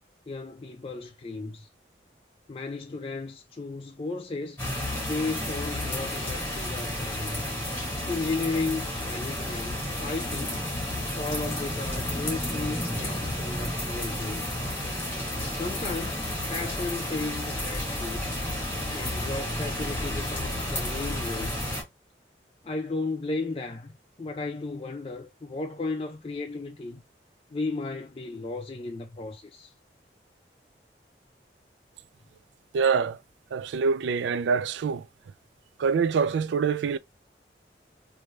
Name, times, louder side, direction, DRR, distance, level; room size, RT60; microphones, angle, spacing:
voice 1, 0.3-1.7 2.5-4.6 5.0-7.5 8.1-10.6 11.1-14.5 15.5-18.3 18.9-21.6 22.6-23.9 24.2-27.0 27.5-29.7, left 3 dB, 30° left, 0.4 m, -34 dB
sound 1, 4.6-21.8, left 1 dB, 15° left, 1.8 m, -31 dB
voice 2, 32.7-33.2 33.5-35.1 35.8-37.0, right 5 dB, 85° right, 0.3 m, -25 dB
3.2 x 2.6 x 3.1 m
head